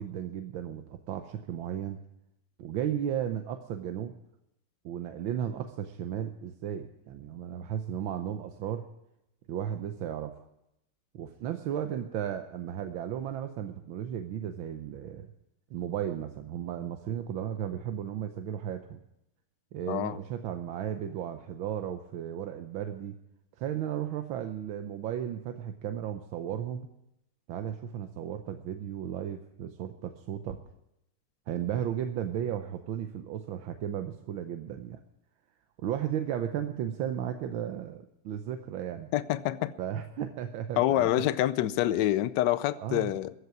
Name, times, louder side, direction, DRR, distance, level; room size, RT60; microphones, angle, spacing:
voice 1, 0.0-2.0 2.6-4.2 4.8-8.9 9.5-10.3 11.1-15.3 15.7-19.0 19.7-23.1 23.6-26.9 27.5-30.6 31.5-35.0 35.8-39.1 39.8-41.1 42.8-43.2, right 10 dB, 70° right, 1.5 m, -35 dB
voice 2, 19.9-20.2 39.1-39.7 40.8-43.3, left 13 dB, 70° left, 1.1 m, -27 dB
15.0 x 8.0 x 9.5 m
omnidirectional pair, 2.4 m